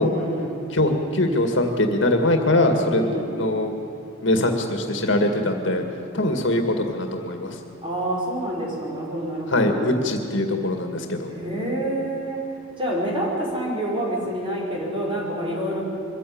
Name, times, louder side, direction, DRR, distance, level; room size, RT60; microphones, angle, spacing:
voice 1, 0.0-0.6 2.9-3.5 7.8-9.9 11.3-12.4 12.8-15.8, right 1 dB, 25° right, -3 dB, 5.2 m, -27 dB
voice 2, 0.7-3.7 4.2-5.8 6.1-7.6 9.5-11.3, left 1 dB, 65° left, 4 dB, 2.1 m, -22 dB
23.5 x 15.0 x 8.8 m, 2.5 s
head